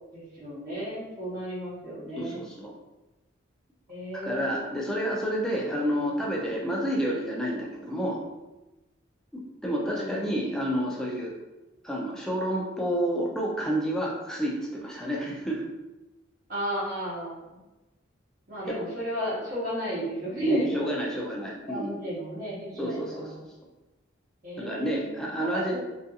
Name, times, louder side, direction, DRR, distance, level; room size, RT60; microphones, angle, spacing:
voice 1, 0.1-2.5 3.9-4.9 9.8-10.4 16.5-17.6 18.5-20.9 21.4-23.4 24.4-25.8, equal, 45° right, -11 dB, 0.9 m, -34 dB
voice 2, 2.2-2.7 4.1-8.2 9.3-11.3 11.8-15.6 20.4-21.9 22.8-23.3 24.6-25.8, equal, 5° left, -3 dB, 0.4 m, -29 dB
2.5 x 2.3 x 2.7 m, 1.1 s
head